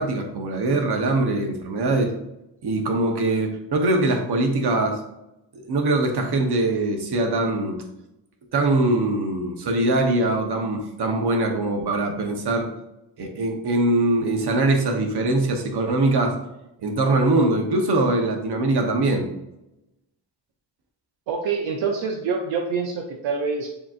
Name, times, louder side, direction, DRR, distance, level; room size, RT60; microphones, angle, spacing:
voice 1, 0.0-2.1 2.6-5.0 5.5-7.8 8.5-12.7 13.2-16.4 16.8-19.3, right 2 dB, 60° right, 3 dB, 1.0 m, -22 dB
voice 2, 21.3-23.7, right 5 dB, 90° right, 1 dB, 0.7 m, -26 dB
6.8 x 2.9 x 2.5 m, 0.90 s
cardioid pair, 75°, 43 cm